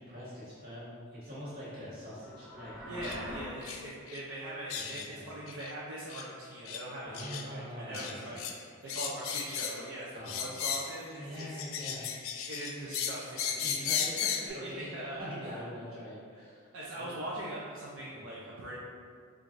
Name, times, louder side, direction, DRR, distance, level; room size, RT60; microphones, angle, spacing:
voice 1, 0.0-3.1 4.7-5.3 7.0-8.4 10.1-10.5 11.2-12.0 13.6-14.1 14.5-14.9 15.2-17.1 18.1-18.3, equal, 50° right, -10 dB, 1.4 m, -44 dB
sound 1, 2.1-3.5, left 1 dB, ahead, 0.4 m, -44 dB
voice 2, 2.9-11.6 12.5-13.8 14.4-15.6 16.7-18.7, right 1 dB, 65° right, -7 dB, 0.5 m, -41 dB
sound 2, 3.0-3.2 3.6-3.8 4.1-4.2 4.7-5.1 5.5-5.7 6.1-6.3 6.7-6.8 7.1-7.4 7.9-8.5 8.9-9.9 10.3-11.0 11.4-14.5, left 7 dB, 75° left, 0.3 m, -35 dB
4.5 x 2.4 x 2.5 m, 2.1 s
head